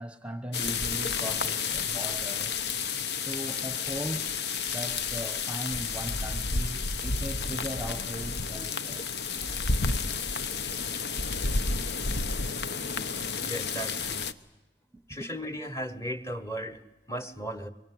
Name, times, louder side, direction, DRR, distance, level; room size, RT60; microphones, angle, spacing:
voice 1, 0.0-2.6 3.1-4.4 4.7-9.1 9.5-9.6 14.9-15.3, equal, 5° right, 1.0 m, -38 dB
sound 1, 0.5-14.3, left 4 dB, 65° left, 1.0 m, -31 dB
voice 2, 13.4-14.3 15.1-17.7, equal, 15° left, 1.2 m, -36 dB
24.5 x 23.5 x 9.5 m
head